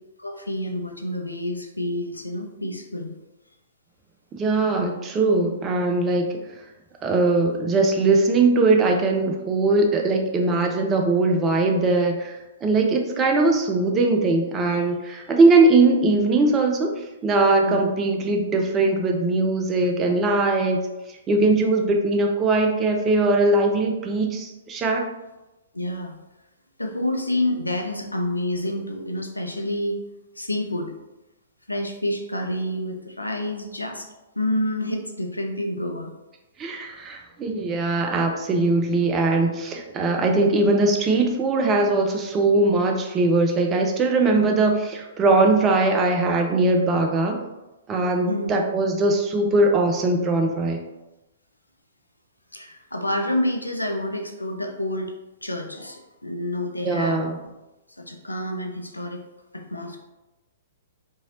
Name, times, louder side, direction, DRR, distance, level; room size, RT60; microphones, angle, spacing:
voice 1, 0.2-3.1 17.6-17.8 25.7-26.1 26.8-30.0 30.4-30.9 31.7-34.1 34.4-36.1 48.3-48.5 52.5-55.1 55.4-57.3 58.0-59.2 59.5-60.0, left 1 dB, 90° left, 3 dB, 0.4 m, -28 dB
voice 2, 4.3-6.4 7.0-16.9 17.2-20.8 21.3-25.0 36.6-47.4 47.9-50.8 56.8-57.4, right 2 dB, 20° right, 2 dB, 0.4 m, -20 dB
2.8 x 2.8 x 2.9 m, 1.0 s
figure-of-eight pair, 115°, 0 cm